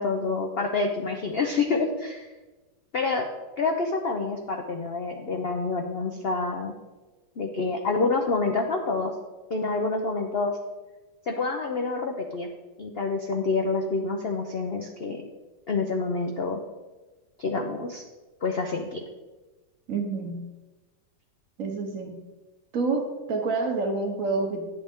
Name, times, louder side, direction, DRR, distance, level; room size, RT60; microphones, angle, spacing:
voice 1, 0.0-2.3 2.9-3.3 3.6-6.7 7.4-9.1 9.5-10.6 11.3-12.5 12.8-15.2 15.7-16.6 17.4-18.0 18.4-19.0, left 3 dB, 70° left, 3 dB, 0.5 m, -27 dB
voice 2, 19.9-20.5 21.6-22.2 22.7-24.7, right 3 dB, 50° right, 3 dB, 1.2 m, -28 dB
10.0 x 7.5 x 3.6 m, 1.2 s
omnidirectional pair, 2.0 m